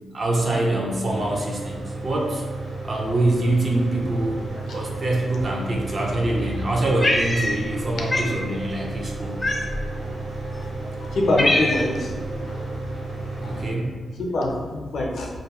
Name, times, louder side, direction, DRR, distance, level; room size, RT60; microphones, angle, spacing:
voice 1, 0.1-1.8 2.0-2.4 2.8-9.4 13.4-14.0, right 2 dB, 45° right, -1 dB, 0.5 m, -24 dB
Mechanical fan, 1.0-13.7, right 2 dB, 70° right, 0.9 m, -33 dB
Cat, 7.0-7.8 8.1-8.4 9.4-9.9 10.6-10.7 11.1-12.1, left 1 dB, 25° left, 0.3 m, -23 dB
voice 2, 11.1-12.6 13.4-13.6 14.2-15.3, left 1 dB, 75° left, -1 dB, 0.5 m, -25 dB
2.6 x 2.2 x 2.9 m, 1.4 s
cardioid pair, 95°, 0 cm